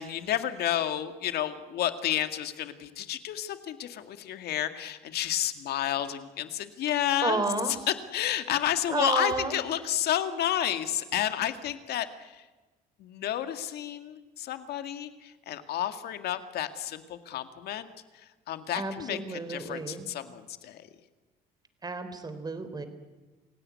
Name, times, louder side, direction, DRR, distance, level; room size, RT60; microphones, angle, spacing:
voice 1, 0.0-7.4 8.1-12.4 13.0-17.9 18.5-20.8, left 11 dB, 70° left, 9 dB, 2.0 m, -31 dB
voice 2, 7.2-7.7 8.9-9.5 18.7-20.1 21.8-22.9, right 3 dB, 25° right, 10 dB, 3.4 m, -31 dB
27.5 x 17.0 x 9.5 m, 1.2 s
cardioid pair, 110°, 17 cm